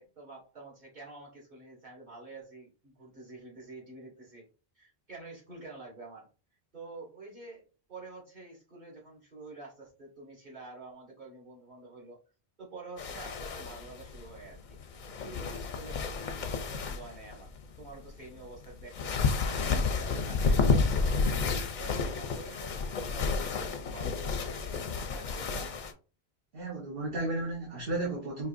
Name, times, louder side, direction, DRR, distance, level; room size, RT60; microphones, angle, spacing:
voice 1, 0.0-4.5 4.7-6.3 6.7-7.6 7.9-12.2 12.6-14.8 15.2-25.7, right 3 dB, 45° right, -7 dB, 2.5 m, -48 dB
sound 1, 13.0-25.9, left 4 dB, 55° left, 0.6 m, -31 dB
voice 2, 26.5-28.5, right 2 dB, 60° right, -4 dB, 1.3 m, -34 dB
4.9 x 3.0 x 2.5 m, 0.35 s
omnidirectional pair, 1.1 m